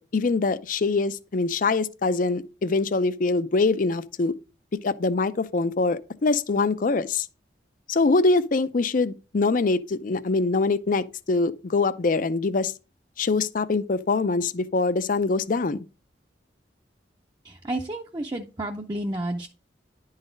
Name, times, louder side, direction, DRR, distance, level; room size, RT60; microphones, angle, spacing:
voice 1, 0.0-4.3 4.8-7.3 7.9-12.7 13.2-15.8, left 3 dB, 50° left, 0.5 m, -24 dB
voice 2, 17.4-19.5, right 1 dB, 25° right, 0.6 m, -31 dB
10.5 x 4.0 x 5.1 m
head